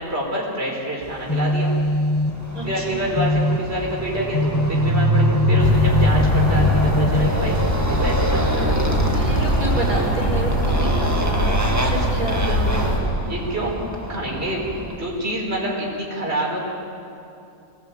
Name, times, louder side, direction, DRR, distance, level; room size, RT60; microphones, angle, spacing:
voice 1, 0.0-1.7 2.6-8.8 13.3-13.7 14.1-14.7 15.0-16.6, right 1 dB, 45° right, -3 dB, 4.8 m, -27 dB
sound 1, 1.0-7.9, left 1 dB, 20° left, 0.7 m, -23 dB
Motorcycle, 2.4-15.1, equal, 10° right, 1.8 m, -25 dB
voice 2, 2.5-3.1 9.1-13.3, right 1 dB, 80° right, -3 dB, 5.5 m, -29 dB
sound 2, 5.6-13.0, equal, 60° left, 5.8 m, -22 dB
26.0 x 19.0 x 9.4 m, 2.6 s
omnidirectional pair, 1.5 m